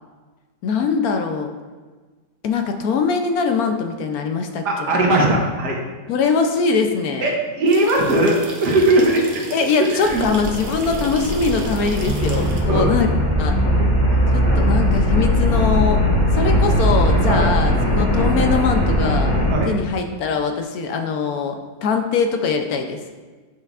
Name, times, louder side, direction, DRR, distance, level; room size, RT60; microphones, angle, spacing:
voice 1, 0.6-1.5 2.4-4.9 6.1-7.4 9.5-13.5 14.3-16.0 16.3-19.3 19.7-23.0, left 5 dB, 70° left, 5 dB, 1.0 m, -22 dB
voice 2, 4.7-5.8 7.2-9.4 10.0-10.3 12.7-12.9 13.8-14.2 17.3-17.5 19.5-19.7, right 2 dB, 80° right, -1 dB, 1.7 m, -19 dB
sound 1, 7.7-12.6, right 3 dB, 55° right, 1.1 m, -33 dB
sound 2, 10.0-19.5, left 1 dB, 30° left, 1.3 m, -21 dB
sound 3, 12.0-17.4, equal, 25° right, 1.8 m, -21 dB
9.2 x 5.5 x 2.4 m, 1.4 s
omnidirectional pair, 1.8 m